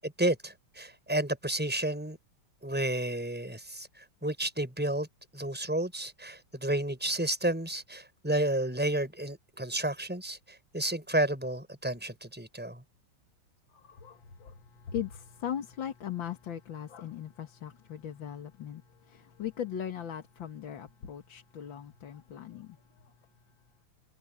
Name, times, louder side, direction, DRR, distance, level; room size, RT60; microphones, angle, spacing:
voice 1, 0.0-2.2 2.6-5.1 5.3-12.8, right 1 dB, 5° right, 6.5 m, -31 dB
voice 2, 14.9-18.8 19.4-22.7, left 9 dB, 60° left, 2.3 m, -38 dB
omnidirectional pair, 2.4 m